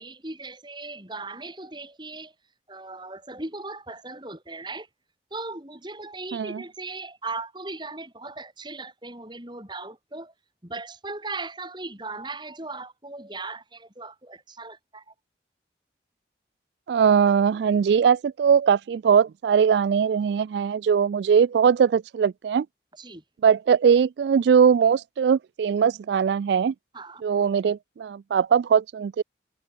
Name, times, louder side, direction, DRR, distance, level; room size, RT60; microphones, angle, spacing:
voice 1, 0.0-2.3 2.7-4.9 5.3-10.3 10.6-15.0 23.0-23.2 26.9-27.2, right 3 dB, 25° right, 4.6 m, -38 dB
voice 2, 6.3-6.6 16.9-22.7 23.4-26.7 27.2-29.2, right 7 dB, 70° right, 0.3 m, -20 dB
open air
head